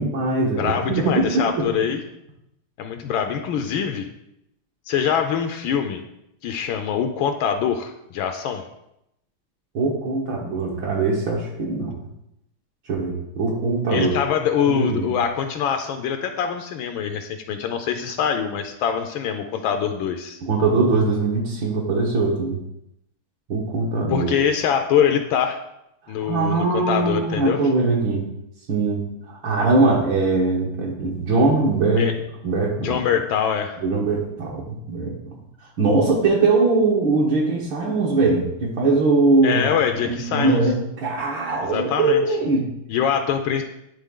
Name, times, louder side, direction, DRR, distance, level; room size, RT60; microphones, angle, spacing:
voice 1, 0.0-1.7 9.7-11.9 12.9-14.1 14.7-15.1 20.4-22.6 23.5-24.3 26.1-28.3 28.7-32.1 32.4-33.0 33.8-35.1 35.8-39.6 40.1-42.7, right 3 dB, 65° right, -3 dB, 1.9 m, -21 dB
voice 2, 0.6-2.0 2.8-4.1 4.9-6.0 6.4-8.6 13.9-20.4 24.1-25.6 26.1-27.6 32.0-32.1 32.8-33.8 39.4-40.6 41.6-42.2 42.9-43.6, left 8 dB, 75° left, 6 dB, 1.3 m, -24 dB
10.0 x 3.8 x 3.7 m, 0.81 s
omnidirectional pair, 2.4 m